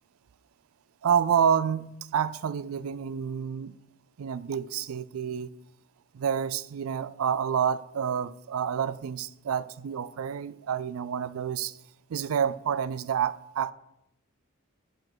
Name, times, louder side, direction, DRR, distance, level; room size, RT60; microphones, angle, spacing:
voice 1, 1.0-3.7 4.2-5.5 6.1-11.8 12.1-13.7, right 8 dB, 80° right, 0.4 m, -28 dB
7.8 x 4.5 x 6.2 m
head